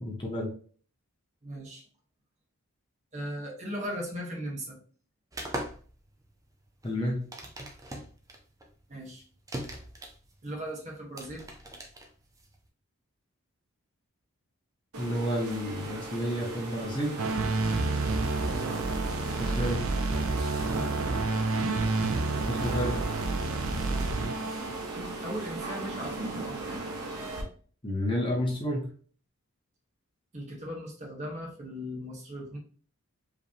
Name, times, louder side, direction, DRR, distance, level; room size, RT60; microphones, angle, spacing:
voice 1, 0.0-0.5 6.8-7.2 15.0-17.2 19.4-19.8 22.5-23.0 27.8-28.9, equal, 20° left, -1 dB, 0.8 m, -30 dB
voice 2, 1.4-1.8 3.1-4.8 8.9-9.2 10.4-11.5 18.4-18.8 20.7-20.9 23.8-24.1 25.2-26.8 30.3-32.6, equal, 30° right, -2 dB, 1.3 m, -38 dB
sound 1, 5.3-12.7, right 1 dB, 15° right, 0.6 m, -41 dB
sound 2, 14.9-27.4, right 2 dB, 90° right, 1.2 m, -38 dB
sound 3, 17.2-24.9, right 3 dB, 70° right, 0.5 m, -29 dB
5.0 x 3.2 x 2.8 m, 0.43 s
head